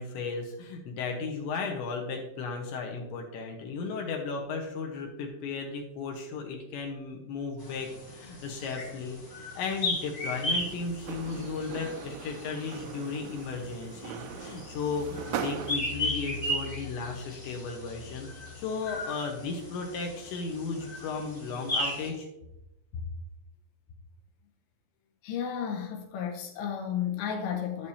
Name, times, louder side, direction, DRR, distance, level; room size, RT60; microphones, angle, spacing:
voice 1, 0.0-18.3 18.6-22.3 22.9-23.0, left 4 dB, 75° left, 3.2 m, -35 dB
sound 1, 7.6-22.1, left 1 dB, 55° left, 1.0 m, -37 dB
sound 2, 10.4-15.8, right 8 dB, 85° right, 2.9 m, -40 dB
voice 2, 25.2-27.9, left 8 dB, 90° left, 3.5 m, -33 dB
13.0 x 6.8 x 2.8 m
omnidirectional pair, 5.6 m